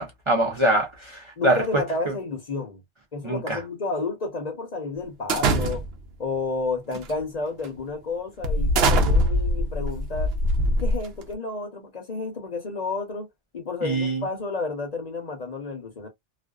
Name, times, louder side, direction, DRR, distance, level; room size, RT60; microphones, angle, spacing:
voice 1, 0.0-2.1 3.2-3.6 13.8-14.3, right 1 dB, 45° right, 0.4 m, -24 dB
voice 2, 1.4-2.8 3.1-5.8 6.2-10.3 10.8-13.3 13.5-16.1, left 3 dB, 40° left, 0.8 m, -31 dB
sound 1, 5.3-6.1 6.9-7.2 7.6-7.8 8.4-11.3, equal, 65° right, 0.7 m, -23 dB
2.5 x 2.2 x 2.3 m
omnidirectional pair, 1.2 m